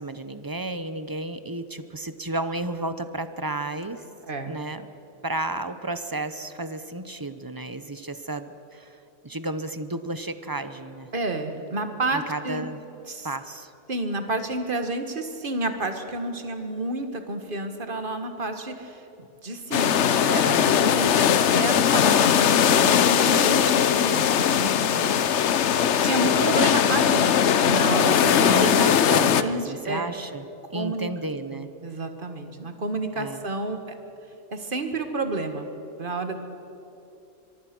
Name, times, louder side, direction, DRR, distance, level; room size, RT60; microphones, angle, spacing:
voice 1, 0.0-4.0 4.5-4.9 5.2-9.0 9.2-11.1 12.1-12.8 13.2-13.7 28.4-30.4 30.7-31.7 33.2-33.4, right 2 dB, 20° right, 11 dB, 0.8 m, -32 dB
voice 2, 11.1-12.7 13.1-13.3 13.9-25.2 26.0-27.3 27.6-29.0 29.4-30.1 30.7-31.1 31.5-34.0 34.5-35.7 36.0-36.4, right 2 dB, 45° right, 7 dB, 1.8 m, -30 dB
sound 1, 19.7-29.4, left 8 dB, 70° left, 1.0 m, -20 dB
24.0 x 23.5 x 6.1 m, 2.9 s
omnidirectional pair, 1.3 m